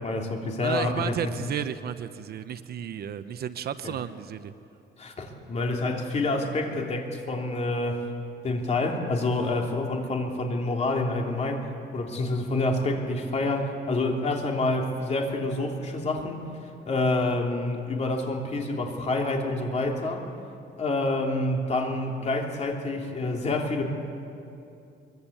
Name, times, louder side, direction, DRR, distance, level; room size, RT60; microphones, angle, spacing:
voice 1, 0.0-1.1 3.8-3.9 5.0-8.1 8.4-11.6 11.9-16.5 16.9-20.3 20.8-23.8, left 2 dB, 35° left, 1 dB, 3.2 m, -27 dB
voice 2, 0.6-4.5, right 9 dB, 55° right, 11 dB, 0.9 m, -33 dB
24.0 x 23.5 x 8.7 m, 2.7 s
cardioid pair, 160°, 19 cm